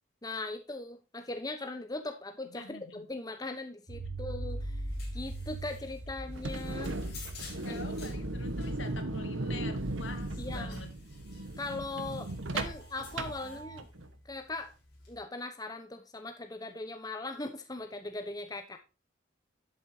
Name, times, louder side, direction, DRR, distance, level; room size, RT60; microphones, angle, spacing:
voice 1, 0.2-4.8 5.1-7.0 7.7-7.8 10.4-10.8 11.6-13.9 14.2-14.7 15.1-18.8, left 2 dB, 20° left, 7 dB, 0.9 m, -39 dB
voice 2, 2.5-3.1 7.6-10.9 13.4-13.6, left 3 dB, 75° left, 7 dB, 2.3 m, -46 dB
sound 1, 3.9-10.8, right 1 dB, 50° right, 4.7 m, -40 dB
sound 2, 4.5-15.2, left 4 dB, 55° left, 6.0 m, -53 dB
sound 3, 6.3-14.1, right 2 dB, 85° right, 1.3 m, -37 dB
11.5 x 8.1 x 2.8 m, 0.29 s
head